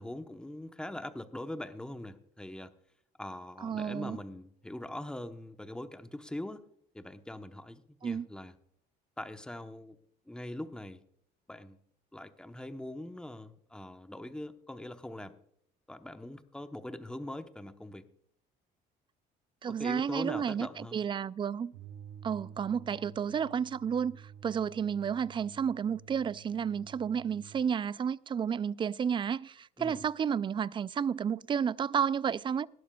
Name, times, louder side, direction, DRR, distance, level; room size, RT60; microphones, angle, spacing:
voice 1, 0.0-2.7 3.2-6.6 6.9-8.5 9.2-10.0 10.3-11.0 11.5-11.8 12.1-15.3 15.9-18.0 19.7-21.0 29.8-30.0, left 1 dB, 5° left, 0.9 m, -42 dB
voice 2, 3.6-4.2 8.0-8.3 19.6-21.7 22.2-32.7, right 7 dB, 30° right, 0.3 m, -31 dB
sound 1, 21.7-27.7, right 7 dB, 85° right, 0.8 m, -51 dB
19.5 x 12.0 x 2.3 m
cardioid pair, 110°, 17 cm